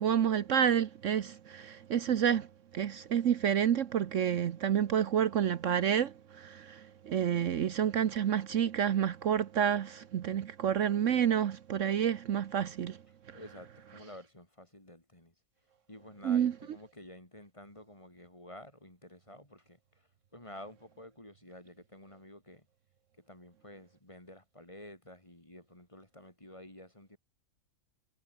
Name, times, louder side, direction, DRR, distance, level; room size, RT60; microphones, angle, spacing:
voice 1, 0.0-2.5 2.7-13.0 13.3-13.4 16.2-16.5, right 9 dB, 65° right, 1.2 m, -29 dB
voice 2, 13.1-15.3 15.9-22.7 23.2-27.2, left 1 dB, 20° left, 3.8 m, -51 dB
omnidirectional pair, 1.5 m